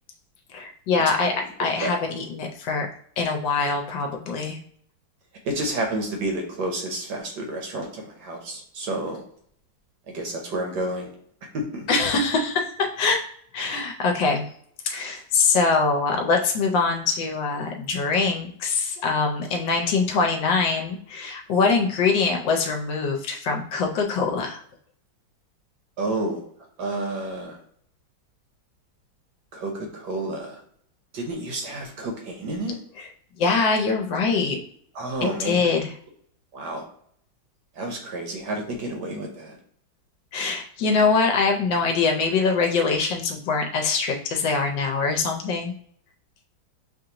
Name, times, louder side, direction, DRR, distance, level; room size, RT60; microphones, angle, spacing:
voice 1, 0.5-1.3 1.6-2.9 3.2-4.6 11.9-13.2 13.5-14.5 14.8-24.6 33.0-33.1 33.4-34.6 35.2-35.9 40.3-45.7, left 4 dB, 70° left, 2 dB, 1.2 m, -23 dB
voice 2, 5.4-9.2 10.1-11.1 11.5-11.8 26.0-26.4 26.8-27.6 29.5-30.6 31.1-32.8 34.9-35.7 36.5-36.8 37.8-39.6, right 1 dB, 65° right, 2 dB, 1.2 m, -30 dB
6.4 x 2.5 x 2.8 m, 0.64 s
omnidirectional pair, 2.2 m